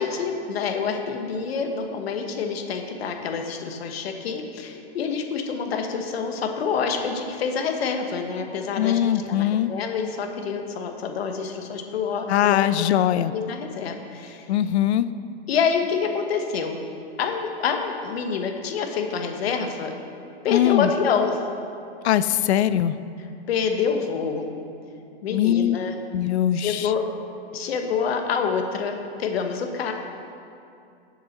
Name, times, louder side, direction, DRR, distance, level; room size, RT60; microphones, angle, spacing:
voice 1, 0.0-12.7 13.3-14.5 15.5-16.8 17.2-20.0 20.4-21.4 23.5-24.5 25.2-25.9 26.5-27.0 27.5-29.9, left 6 dB, 70° left, 4 dB, 1.2 m, -27 dB
voice 2, 8.8-9.7 12.3-13.3 14.5-15.1 20.5-20.9 22.0-22.9 25.3-25.8 26.1-26.9, left 11 dB, 85° left, 15 dB, 0.5 m, -21 dB
7.4 x 6.9 x 6.6 m, 2.6 s
supercardioid pair, 165°, 32 cm